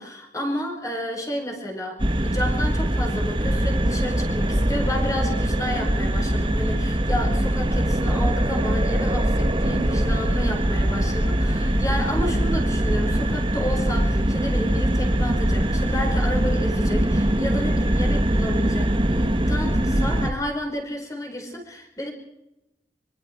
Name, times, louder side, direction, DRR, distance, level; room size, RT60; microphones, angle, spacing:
voice 1, 0.0-22.1, equal, 20° left, 1 dB, 4.7 m, -31 dB
sound 1, 2.0-20.3, right 1 dB, 30° right, 1.4 m, -22 dB
25.5 x 24.5 x 4.5 m, 0.92 s
head